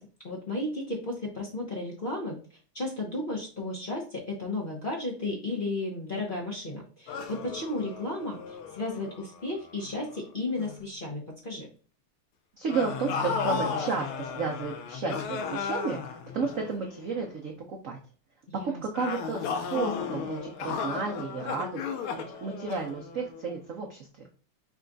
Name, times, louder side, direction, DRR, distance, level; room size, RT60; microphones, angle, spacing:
voice 1, 0.2-2.4 2.7-11.7 18.6-18.8, left 2 dB, 65° left, -2 dB, 0.5 m, -34 dB
sound 1, 7.1-10.2 10.6-10.9 12.7-17.3 18.9-23.5, left 6 dB, 80° left, 1.5 m, -35 dB
voice 2, 12.6-18.0 18.6-22.1 22.4-24.3, right 4 dB, 85° right, 0 dB, 0.7 m, -32 dB
5.5 x 2.3 x 3.8 m, 0.39 s
omnidirectional pair, 2.3 m